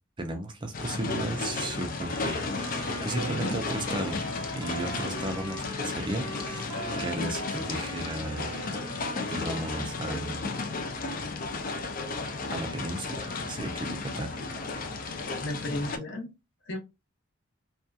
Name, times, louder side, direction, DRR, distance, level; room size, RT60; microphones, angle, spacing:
voice 1, 0.2-4.3 4.5-8.5 8.8-10.5 12.5-14.3, right 2 dB, 25° right, 0.4 m, -35 dB
sound 1, 0.7-16.0, left 3 dB, 40° left, 0.4 m, -34 dB
sound 2, 2.1-10.4, right 2 dB, 85° right, 0.9 m, -41 dB
voice 2, 15.4-16.3 16.7-16.8, left 1 dB, 55° left, 0.8 m, -34 dB
2.7 x 2.3 x 2.3 m
head